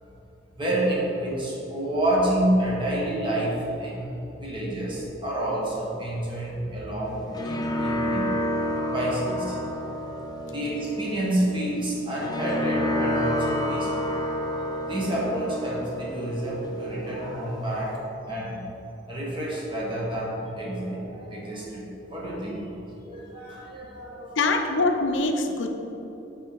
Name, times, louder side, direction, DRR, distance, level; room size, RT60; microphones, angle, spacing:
voice 1, 0.6-4.1 4.4-8.3 8.8-9.8 10.4-14.1 14.8-18.0 18.3-18.6 19.1-22.8 23.0-24.4, right 1 dB, 30° right, -5 dB, 1.5 m, -29 dB
sound 1, 7.0-18.0, equal, 20° left, 0.5 m, -30 dB
voice 2, 24.4-25.7, left 3 dB, 80° left, 4 dB, 0.6 m, -23 dB
6.5 x 4.5 x 4.6 m, 3.0 s
head